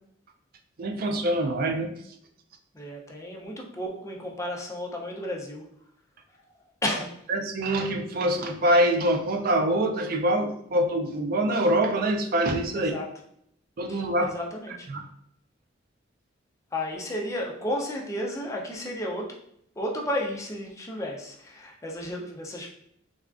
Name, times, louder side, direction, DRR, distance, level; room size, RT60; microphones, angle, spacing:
voice 1, 0.8-1.9 7.3-12.9 13.8-14.3 14.9-15.0, right 1 dB, 50° right, 4 dB, 0.4 m, -24 dB
voice 2, 2.7-5.6 6.8-7.1 12.7-13.0 13.9-14.9 16.7-19.3 19.8-22.7, left 1 dB, 15° left, 0 dB, 0.5 m, -33 dB
3.4 x 2.4 x 2.4 m, 0.71 s
head